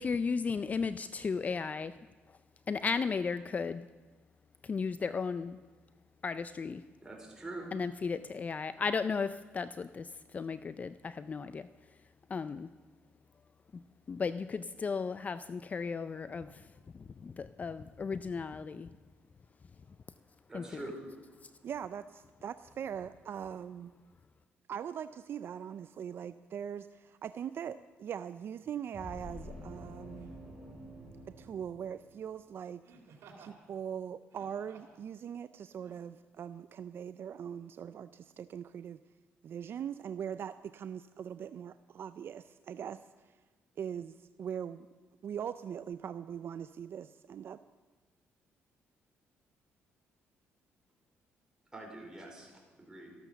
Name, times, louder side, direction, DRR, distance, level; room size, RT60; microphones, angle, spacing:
voice 1, 0.0-1.9 2.7-3.9 4.6-5.6 6.2-6.8 7.7-11.7 12.3-12.7 13.7-13.8 14.1-16.7 16.9-18.9 20.5-20.6, left 5 dB, 35° left, 13 dB, 0.4 m, -35 dB
voice 2, 7.0-7.7 20.5-21.0 51.7-53.1, right 1 dB, 15° right, -1 dB, 4.5 m, -45 dB
voice 3, 21.6-23.9 24.7-30.4 31.3-32.8 33.4-39.0 39.4-43.4 43.8-44.9 45.2-47.6, right 8 dB, 55° right, 13 dB, 0.4 m, -41 dB
Laughter, 28.6-28.8 30.1-30.5 32.8-33.6 34.2-35.0 35.8-35.9, right 4 dB, 75° right, 2.7 m, -56 dB
sound 1, 28.9-32.4, left 1 dB, 5° left, 5.5 m, -48 dB
13.5 x 12.0 x 7.0 m, 1.3 s
cardioid pair, 100°, 5 cm